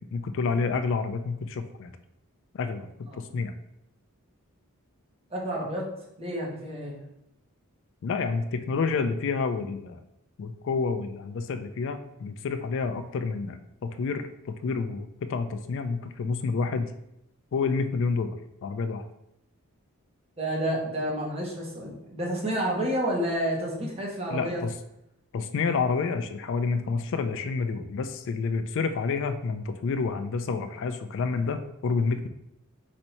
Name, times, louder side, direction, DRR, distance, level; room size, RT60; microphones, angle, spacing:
voice 1, 0.1-1.9 2.5-3.5 8.0-10.0 10.4-16.9 17.5-19.1 24.3-24.7 25.3-32.3, left 4 dB, 60° left, 9 dB, 0.3 m, -29 dB
voice 2, 5.3-5.9 6.2-7.0 20.4-24.6, right 1 dB, 25° right, -2 dB, 1.1 m, -30 dB
4.2 x 2.7 x 4.3 m, 0.81 s
head